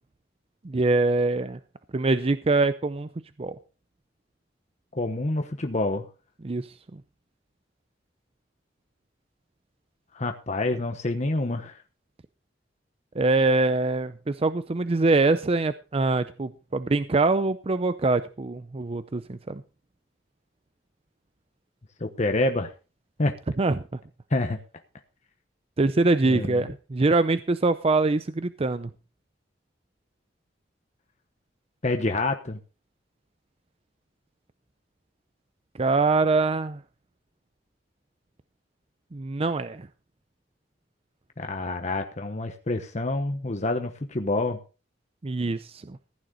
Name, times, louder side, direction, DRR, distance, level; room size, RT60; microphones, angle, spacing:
voice 1, 0.6-1.6 1.9-3.1 3.4-3.6 6.4-6.6 13.2-19.6 23.6-24.0 25.8-28.9 35.8-36.8 39.1-39.9 45.2-46.0, right 3 dB, 35° right, 13 dB, 0.5 m, -24 dB
voice 2, 4.9-6.1 10.1-11.8 22.0-22.7 23.2-23.3 24.3-24.6 26.3-26.7 31.8-32.6 41.4-44.6, left 2 dB, 40° left, 6 dB, 1.1 m, -27 dB
15.5 x 9.5 x 3.9 m, 0.33 s
head